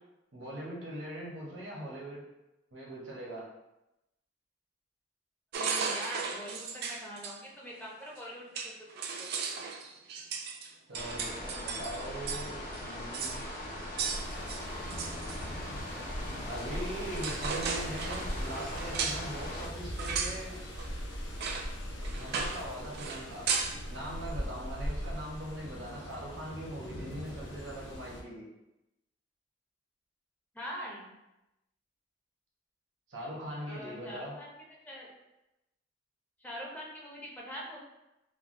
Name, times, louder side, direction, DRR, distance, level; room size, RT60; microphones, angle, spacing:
voice 1, 0.3-2.2 2.7-3.4 10.9-13.4 16.4-20.6 22.1-23.5 23.9-28.5 33.1-34.4, right 1 dB, 80° right, -4 dB, 0.9 m, -41 dB
sound 1, 5.5-7.4 8.2-8.3 8.6-12.5 12.7-12.8 13.1-13.4 14.0-15.5 16.7-16.9 17.1-19.3 20.0-20.4 20.8-20.9 21.4-21.7 22.0-22.7 22.9-23.8, right 5 dB, 55° right, 0.3 m, -35 dB
voice 2, 5.6-9.3 30.5-31.1 33.7-34.5 34.9-35.1 36.4-37.8, equal, 10° left, -4 dB, 0.5 m, -43 dB
sound 2, 10.9-19.7, left 1 dB, 45° left, 0.9 m, -40 dB
sound 3, 14.1-28.2, equal, 70° left, 0.6 m, -41 dB
3.2 x 2.1 x 2.5 m, 0.93 s
head